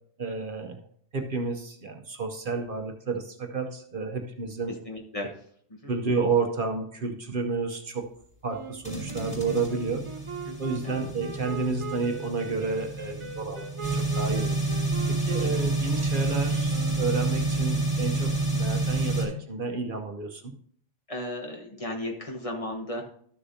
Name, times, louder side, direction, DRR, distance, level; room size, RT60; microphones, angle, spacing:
voice 1, 0.2-0.8 1.1-4.7 5.9-8.1 8.4-10.0 10.6-14.6 15.1-20.5, right 4 dB, 55° right, 4 dB, 0.9 m, -31 dB
voice 2, 4.8-5.4 5.8-5.9 10.4-11.0 15.4-15.5 21.1-23.0, left 1 dB, 30° left, 1 dB, 1.2 m, -35 dB
Wind instrument woodwind instrument, 8.5-17.9, right 5 dB, 35° right, 0.5 m, -41 dB
sound 1, 8.8-19.3, right 2 dB, 5° left, 2.9 m, -29 dB
13.0 x 6.6 x 2.7 m, 0.63 s
omnidirectional pair, 1.2 m